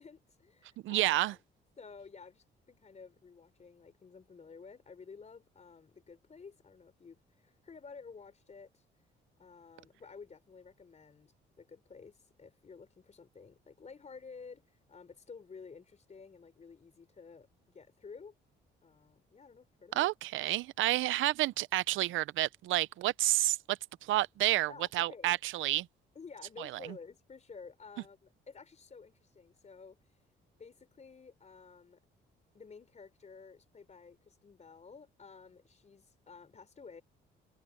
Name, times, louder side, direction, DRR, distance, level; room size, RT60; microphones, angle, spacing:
voice 1, 0.0-1.4 1.8-8.8 9.4-18.3 18.8-20.1 24.7-25.4 26.2-30.0 30.6-32.0 32.5-37.0, left 5 dB, 35° left, 3.7 m, -52 dB
voice 2, 0.8-1.3 20.0-25.9 26.6-26.7, right 16 dB, 80° right, 0.6 m, -30 dB
cardioid pair, 90°, 20 cm